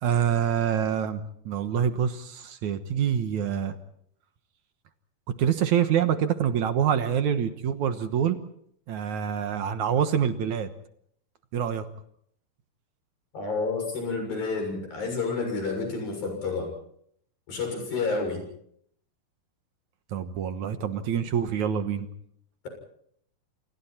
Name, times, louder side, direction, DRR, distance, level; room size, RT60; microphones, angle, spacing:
voice 1, 0.0-3.7 5.4-8.4 8.9-10.7 11.5-11.9 20.1-22.1, right 8 dB, 65° right, 9 dB, 2.4 m, -26 dB
voice 2, 13.3-16.7 17.5-18.4, left 4 dB, 80° left, 4 dB, 8.7 m, -29 dB
29.0 x 28.0 x 4.4 m, 0.67 s
omnidirectional pair, 4.0 m